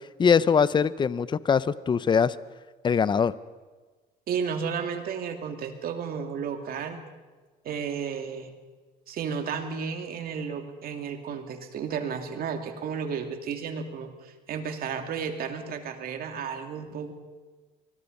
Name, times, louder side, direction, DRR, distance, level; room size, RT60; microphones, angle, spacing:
voice 1, 0.2-2.4 2.8-3.3, left 6 dB, 25° left, 17 dB, 0.6 m, -22 dB
voice 2, 4.3-7.0 7.6-8.5 9.1-17.1, right 6 dB, 60° right, 5 dB, 2.7 m, -33 dB
24.5 x 20.5 x 5.4 m, 1.3 s
cardioid pair, 110°, 17 cm